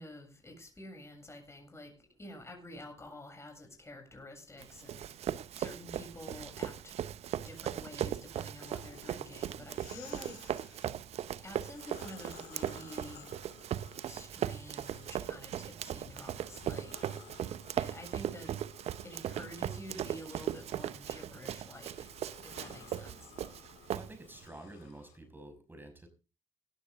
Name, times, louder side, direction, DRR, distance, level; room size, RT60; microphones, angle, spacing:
voice 1, 0.0-1.9 2.2-5.1 5.5-7.0 7.2-10.6 11.4-13.3 14.1-16.9 17.8-18.6 19.0-22.1 22.4-23.3, left 1 dB, 25° left, 3 dB, 7.4 m, -49 dB
Run, 4.6-24.5, right 11 dB, 70° right, 0.8 m, -38 dB
sound 1, 8.6-10.9 11.5-15.6 16.0-25.2, left 11 dB, 85° left, 1.8 m, -56 dB
voice 2, 23.9-26.1, right 1 dB, 20° right, 6 dB, 5.6 m, -50 dB
17.0 x 13.0 x 3.6 m, 0.31 s
supercardioid pair, 50°, 11 cm